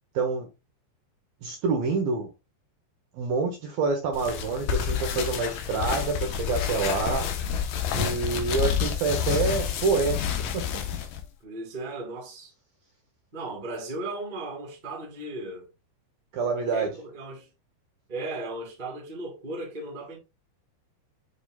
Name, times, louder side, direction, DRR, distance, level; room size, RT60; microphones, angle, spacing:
voice 1, 0.1-0.5 1.4-2.3 3.2-7.3 7.9-10.3 10.5-10.7 16.3-16.9, right 4 dB, 70° right, 2.4 m, -27 dB
sound 1, 4.1-11.2, left 8 dB, 75° left, 2.1 m, -29 dB
voice 2, 9.1-9.6 10.7-10.8 11.4-12.5 13.3-15.7 16.5-17.5 18.1-20.2, right 2 dB, 15° right, 1.5 m, -37 dB
9.6 x 5.0 x 2.4 m
omnidirectional pair, 5.3 m